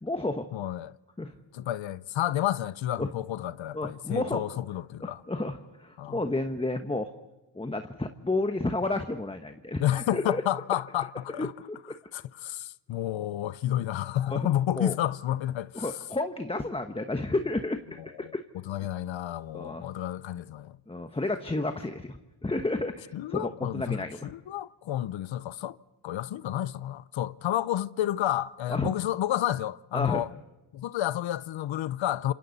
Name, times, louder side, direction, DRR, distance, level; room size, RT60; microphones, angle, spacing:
voice 1, 0.0-0.5 1.2-1.3 3.0-3.1 3.7-4.4 5.0-7.1 7.5-10.4 11.4-12.0 14.3-14.5 14.8-15.0 15.7-18.4 19.5-19.9 20.9-24.3 28.7-28.9 29.9-30.2, left 2 dB, 10° left, 1.2 m, -31 dB
voice 2, 0.5-0.9 1.5-5.2 6.0-6.2 9.8-11.5 12.1-15.9 18.2-18.3 18.7-20.8 23.1-25.8 26.0-30.3 30.7-32.3, left 12 dB, 70° left, 0.8 m, -30 dB
29.0 x 27.0 x 4.1 m
cardioid pair, 100°, 47 cm